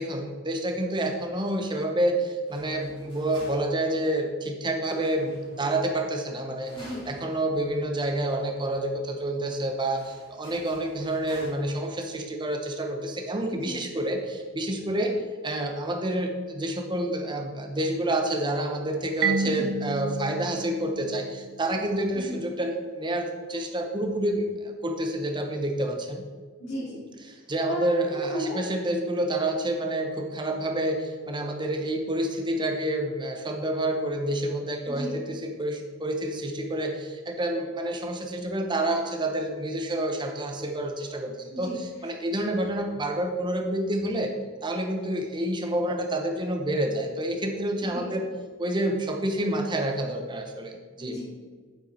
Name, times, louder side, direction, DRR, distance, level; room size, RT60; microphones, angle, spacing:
voice 1, 0.0-15.1 15.4-26.2 27.3-44.3 44.6-48.2 48.6-51.2, right 1 dB, 20° right, 3 dB, 1.0 m, -28 dB
sound 1, 2.5-4.0 4.9-5.9 6.6-7.3 7.7-7.8 8.3-8.4 9.8-11.5, equal, 25° left, 2.8 m, -49 dB
voice 2, 13.5-13.8 19.6-19.7 22.2-22.4 26.6-27.0 27.7-28.6 34.9-35.1 41.5-42.1 47.9-48.1 51.0-51.2, equal, 50° left, -10 dB, 3.0 m, -35 dB
Marimba xylophone, 19.2-21.9, right 4 dB, 55° right, 0.7 m, -31 dB
9.1 x 7.5 x 4.1 m, 1.5 s
head